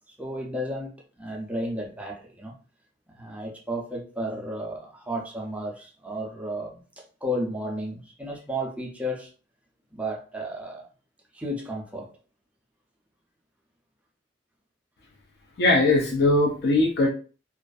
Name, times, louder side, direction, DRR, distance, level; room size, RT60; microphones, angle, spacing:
voice 1, 0.1-0.9 1.2-2.5 3.1-6.8 7.2-9.3 9.9-10.9 11.3-12.1, equal, 5° right, 0.4 m, -33 dB
voice 2, 15.6-17.1, left 2 dB, 55° left, 0.5 m, -20 dB
2.4 x 2.4 x 2.3 m
head